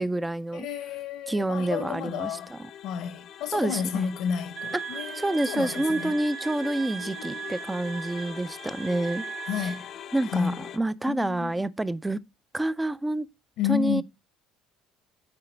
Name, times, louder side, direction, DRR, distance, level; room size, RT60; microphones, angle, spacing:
voice 1, 0.0-0.7 1.3-2.7 3.5-4.1 4.7-9.3 9.6-9.7 10.1-12.2 12.5-13.3 13.7-14.0, right 1 dB, 5° right, 0.3 m, -28 dB
voice 2, 0.5-2.5 2.8-6.1 7.0-7.5 9.5-9.9 10.3-10.6 11.1-11.5 13.6-14.0, left 8 dB, 65° left, 0.8 m, -31 dB
sound 1, 1.5-10.8, left 10 dB, 40° left, 0.6 m, -43 dB
Wind instrument woodwind instrument, 4.6-9.9, right 7 dB, 45° right, 0.6 m, -38 dB
8.7 x 4.7 x 3.2 m
cardioid pair, 165°, 0 cm